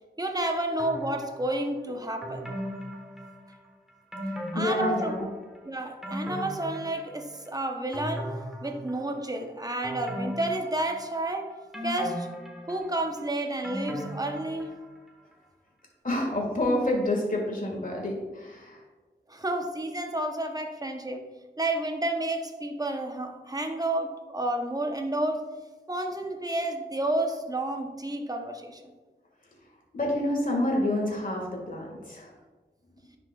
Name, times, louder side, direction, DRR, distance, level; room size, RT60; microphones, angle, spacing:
voice 1, 0.2-2.5 4.5-5.3 5.7-8.3 8.6-11.5 11.8-12.3 12.7-14.8 19.3-21.2 21.6-25.4 25.9-28.9, right 1 dB, 20° right, 4 dB, 0.8 m, -30 dB
sound 1, 0.8-1.6 2.2-3.7 4.1-5.4 5.8-7.5 7.9-9.3 9.8-11.3 11.7-15.0 15.3-15.4, equal, 5° right, 1.2 m, -37 dB
voice 2, 4.3-5.3 16.0-18.8 29.9-32.3, left 1 dB, 45° left, -1 dB, 1.7 m, -28 dB
10.0 x 5.1 x 2.3 m, 1.3 s
wide cardioid pair, 65°, 19 cm